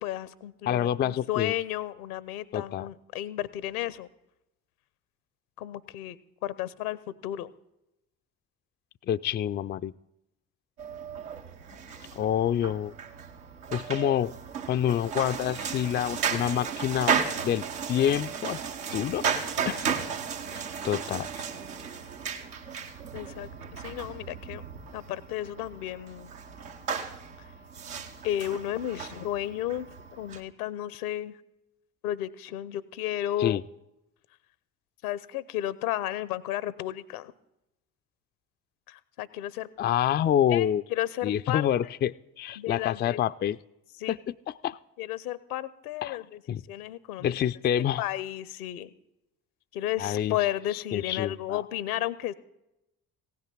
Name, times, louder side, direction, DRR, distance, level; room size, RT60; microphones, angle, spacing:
voice 1, 0.0-4.1 5.6-6.2 6.4-7.5 23.1-24.6 24.9-26.3 28.2-29.9 30.2-31.4 32.0-33.6 35.0-37.3 38.9-39.7 40.5-41.7 42.6-43.2 44.0-44.2 45.0-47.3 48.0-48.9 49.7-52.3, left 13 dB, 75° left, 18 dB, 0.8 m, -33 dB
voice 2, 0.7-1.5 2.5-2.9 9.1-9.9 12.1-12.9 13.7-14.3 14.7-17.2 17.4-18.6 18.9-19.3 19.7-20.0 20.5-21.3 33.4-33.6 39.8-40.8 41.2-43.6 44.1-44.8 46.0-46.2 46.5-46.6 47.2-48.0 50.0-50.4 50.7-51.6, left 10 dB, 25° left, 12 dB, 0.4 m, -27 dB
sound 1, 10.8-30.4, right 6 dB, 80° right, 1.2 m, -35 dB
16.5 x 5.9 x 9.3 m, 0.87 s
figure-of-eight pair, 50°, 45 cm